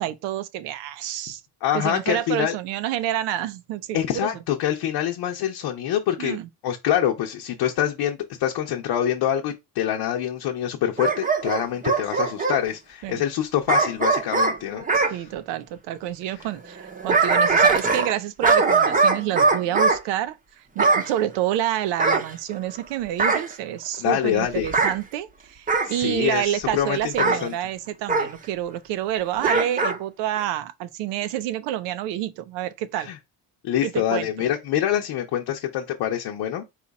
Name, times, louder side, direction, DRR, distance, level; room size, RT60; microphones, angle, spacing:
voice 1, 0.0-1.4 1.7-4.3 6.2-6.5 13.0-13.2 14.9-33.1 33.8-34.5, right 12 dB, 85° right, 0.6 m, -28 dB
voice 2, 1.6-2.5 3.9-6.4 6.6-15.3 24.0-24.7 25.8-27.5 32.9-33.2 33.6-36.6, left 11 dB, 70° left, 0.8 m, -25 dB
Bark / Growling, 11.0-12.6 13.7-15.1 16.8-18.2 18.4-20.0 20.8-21.1 22.0-22.8 23.2-23.5 24.6-25.0 25.7-26.0 27.2-27.4 28.1-28.3 29.4-30.0 30.4-30.5, right 4 dB, 20° right, 0.7 m, -21 dB
4.3 x 2.4 x 4.0 m
cardioid pair, 105°, 41 cm